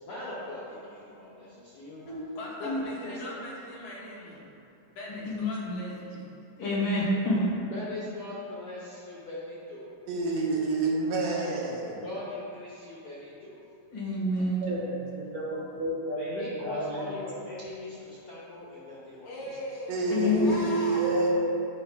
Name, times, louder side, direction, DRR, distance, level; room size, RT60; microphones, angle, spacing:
voice 1, 0.0-2.0 2.6-2.7 3.0-3.2 7.7-10.0 12.0-13.7 16.1-19.3, left 2 dB, 85° left, -8 dB, 1.2 m, -40 dB
voice 2, 2.4-4.5 5.0-6.4 19.3-21.3, left 1 dB, 70° left, -5 dB, 2.4 m, -40 dB
voice 3, 5.3-5.8 6.6-7.5 13.9-14.7 20.1-20.5, left 1 dB, 50° left, -7 dB, 2.1 m, -27 dB
voice 4, 10.1-12.0 19.9-21.4, right 3 dB, 80° right, -4 dB, 2.8 m, -28 dB
voice 5, 14.6-17.0 20.2-20.6 21.0-21.4, equal, 65° right, -5 dB, 1.9 m, -32 dB
12.0 x 5.5 x 2.4 m, 2.6 s
omnidirectional pair, 3.9 m